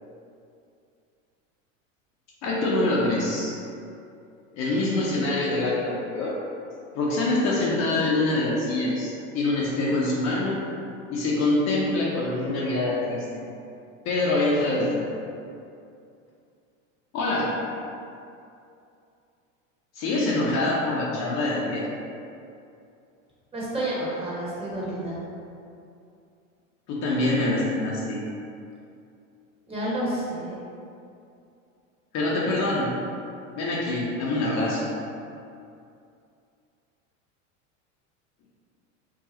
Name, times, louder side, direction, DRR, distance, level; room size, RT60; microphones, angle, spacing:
voice 1, 2.4-3.6 4.5-6.4 6.9-10.6 11.1-13.4 14.0-15.1 17.1-17.6 20.0-21.9 26.9-28.2 32.1-33.0 33.5-34.9, left 2 dB, 40° left, -5 dB, 0.7 m, -25 dB
voice 2, 23.5-25.2 29.7-30.6, right 1 dB, 15° right, -7 dB, 1.1 m, -30 dB
4.8 x 2.3 x 2.8 m, 2.5 s
hypercardioid pair, 105°, 39 cm